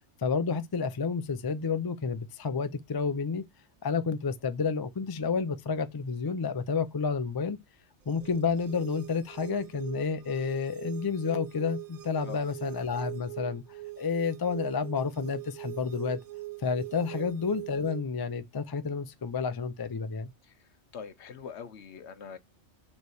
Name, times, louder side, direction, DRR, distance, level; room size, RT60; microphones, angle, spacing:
voice 1, 0.2-3.4 3.8-7.6 8.1-13.6 14.0-16.2 16.6-20.3, left 5 dB, 35° left, 0.4 m, -30 dB
sound 1, 8.0-18.0, right 18 dB, 65° right, 0.3 m, -42 dB
voice 2, 20.9-22.4, left 6 dB, 70° left, 1.1 m, -42 dB
6.8 x 3.2 x 4.7 m
omnidirectional pair, 1.2 m